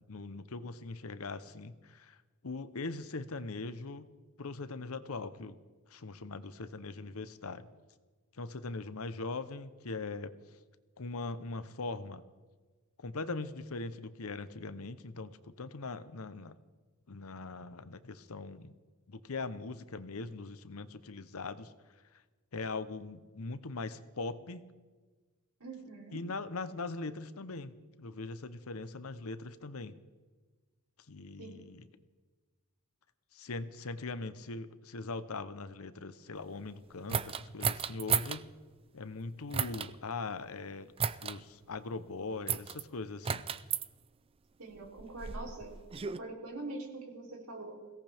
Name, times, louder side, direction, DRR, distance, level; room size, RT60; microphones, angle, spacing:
voice 1, 0.1-2.2 2.4-4.1 4.4-5.6 5.9-7.7 8.3-10.3 11.0-12.2 13.0-16.6 17.1-18.7 19.1-21.7 22.5-24.6 26.1-29.9 31.1-31.8 33.3-38.5 38.9-40.9 41.2-43.5, left 3 dB, 70° left, 13 dB, 0.9 m, -41 dB
voice 2, 25.6-26.2 31.4-31.7 44.6-47.9, right 2 dB, 85° right, 0 dB, 3.4 m, -44 dB
sound 1, 37.1-38.4 39.5-39.9 41.0-41.4 42.5-42.8 43.2-43.9 44.8-46.2, right 7 dB, 25° right, 0.4 m, -33 dB
22.0 x 17.5 x 3.5 m, 1.3 s
head